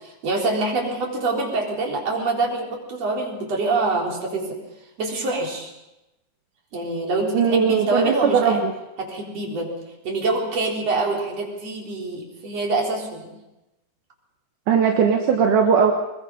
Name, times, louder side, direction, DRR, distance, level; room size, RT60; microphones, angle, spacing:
voice 1, 0.0-4.6 5.0-5.7 6.7-8.6 9.0-9.7 10.0-13.3, right 3 dB, 50° right, -1 dB, 5.0 m, -25 dB
voice 2, 7.3-8.7 14.7-15.9, right 6 dB, 80° right, 2 dB, 2.9 m, -19 dB
22.5 x 22.0 x 5.6 m, 0.95 s
omnidirectional pair, 3.6 m